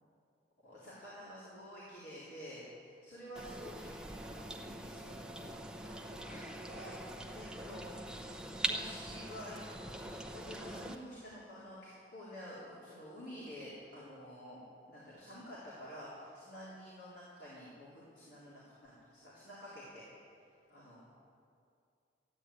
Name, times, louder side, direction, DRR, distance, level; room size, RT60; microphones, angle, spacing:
voice 1, 0.6-8.2 8.7-9.6 10.1-14.6 14.9-20.0 20.7-21.0, equal, 65° left, -8 dB, 3.7 m, -50 dB
sound 1, 3.4-11.0, right 1 dB, 5° right, 0.7 m, -43 dB
14.5 x 9.7 x 8.4 m, 2.4 s
head